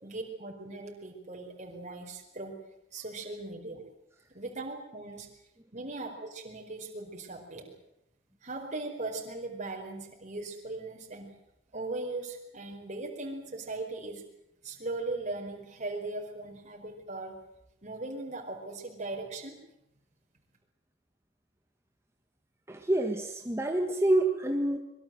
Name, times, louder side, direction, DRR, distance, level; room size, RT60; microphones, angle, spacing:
voice 1, 0.0-2.6 2.9-3.8 4.3-5.3 5.7-7.7 8.4-11.3 11.7-14.2 14.6-17.4 17.8-19.5, right 2 dB, 40° right, 0 dB, 4.9 m, -39 dB
voice 2, 22.7-24.8, right 1 dB, 15° right, 3 dB, 1.8 m, -27 dB
25.5 x 22.0 x 7.8 m, 0.82 s
head